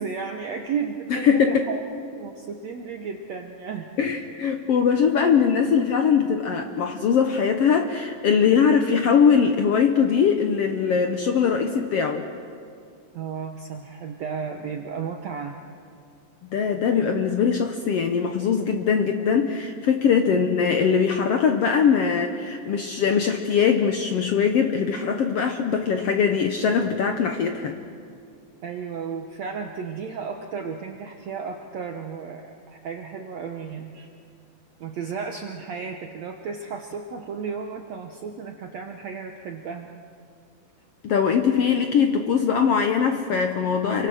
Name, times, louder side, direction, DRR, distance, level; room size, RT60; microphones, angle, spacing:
voice 1, 0.0-1.8 2.1-3.9 13.1-15.6 20.3-20.4 28.6-34.1 34.8-39.9, right 6 dB, 65° right, 3 dB, 1.9 m, -33 dB
voice 2, 1.1-1.7 4.0-12.3 16.4-27.8 41.0-44.1, left 6 dB, 75° left, 5 dB, 1.4 m, -21 dB
29.5 x 23.5 x 6.3 m, 2.3 s
omnidirectional pair, 4.0 m